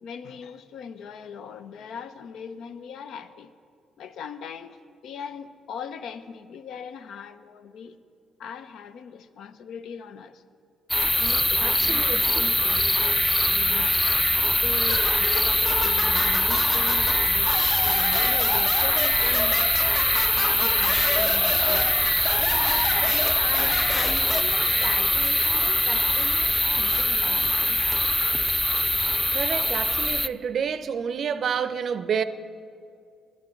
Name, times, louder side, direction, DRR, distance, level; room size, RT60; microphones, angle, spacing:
voice 1, 0.0-3.5 4.0-8.0 8.4-10.4 11.0-14.0 14.4-17.5 17.8-19.7 20.3-21.9 22.4-27.8, left 7 dB, 75° left, 0.6 m, -39 dB
sound 1, 10.9-30.3, left 1 dB, 5° left, 0.3 m, -22 dB
voice 2, 11.6-12.4 29.3-32.2, right 7 dB, 55° right, 0.5 m, -29 dB
sound 2, 14.9-24.4, left 3 dB, 40° left, 0.8 m, -30 dB
9.7 x 9.5 x 7.7 m
cardioid pair, 90°, 0 cm